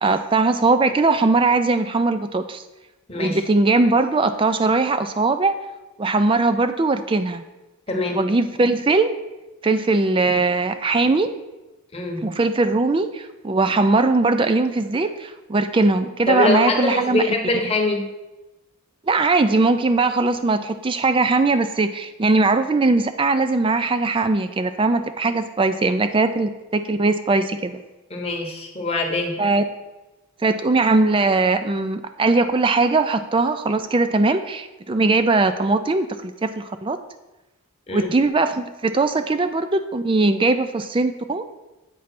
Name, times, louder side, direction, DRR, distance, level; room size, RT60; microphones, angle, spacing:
voice 1, 0.0-2.6 3.1-5.5 6.0-7.4 8.1-9.1 9.6-11.3 12.2-17.2 19.1-27.8 29.4-29.6 30.4-37.0 37.9-41.4, right 3 dB, 25° right, 10 dB, 0.3 m, -20 dB
voice 2, 3.1-3.4 7.9-8.2 11.9-12.3 16.3-18.1 28.1-29.4 37.9-38.1, left 2 dB, 25° left, 1 dB, 0.9 m, -23 dB
8.2 x 3.2 x 5.8 m, 1.0 s
head